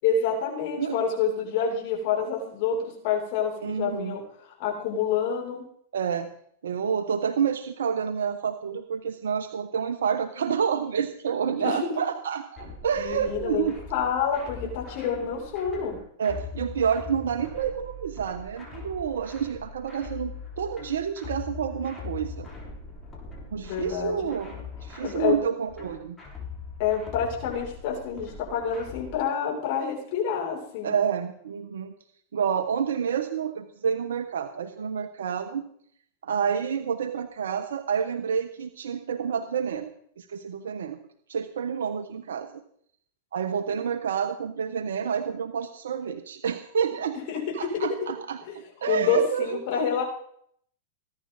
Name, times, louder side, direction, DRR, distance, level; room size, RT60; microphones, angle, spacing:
voice 1, 0.0-5.6 11.6-11.9 13.0-13.7 13.9-16.0 23.6-24.3 25.0-25.4 26.8-31.0 47.3-47.9 48.4-48.5 48.9-50.0, left 6 dB, 55° left, 0 dB, 6.9 m, -28 dB
voice 2, 3.6-4.1 5.9-6.3 6.6-13.8 16.2-22.5 23.5-24.5 24.8-26.2 30.8-31.9 32.3-35.6 36.2-39.9 40.2-41.0 41.3-42.6 43.3-47.1 47.5-49.9, right 7 dB, 80° right, 8 dB, 1.1 m, -29 dB
sound 1, 12.6-29.2, left 4 dB, 15° left, 7.5 m, -41 dB
20.5 x 11.0 x 4.2 m, 0.64 s
hypercardioid pair, 105°, 0 cm